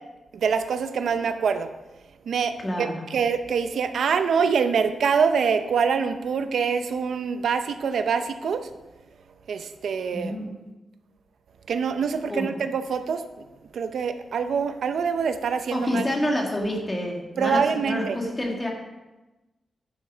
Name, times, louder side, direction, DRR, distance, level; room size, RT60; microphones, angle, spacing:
voice 1, 0.3-1.7 2.3-8.7 9.5-10.4 11.7-13.2 13.7-16.0 17.4-18.2, right 6 dB, 75° right, 9 dB, 0.7 m, -25 dB
voice 2, 2.6-3.0 10.1-10.5 12.3-12.5 15.7-18.7, left 1 dB, 15° left, 0 dB, 2.0 m, -28 dB
10.5 x 7.1 x 6.1 m, 1.1 s
wide cardioid pair, 175°, 0 cm